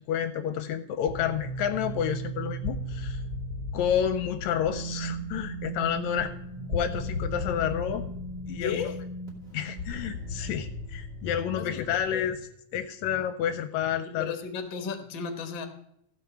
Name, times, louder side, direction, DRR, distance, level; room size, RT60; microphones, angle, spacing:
voice 1, 0.1-3.2 3.7-6.3 6.7-8.1 8.5-8.8 9.5-12.4 12.7-14.3, left 9 dB, 80° left, 9 dB, 1.9 m, -29 dB
sound 1, 1.1-12.4, equal, 20° right, 2.4 m, -36 dB
voice 2, 8.6-9.0 11.5-12.3 14.0-15.7, left 6 dB, 50° left, 6 dB, 1.5 m, -35 dB
15.0 x 5.7 x 6.0 m, 0.75 s
omnidirectional pair, 3.4 m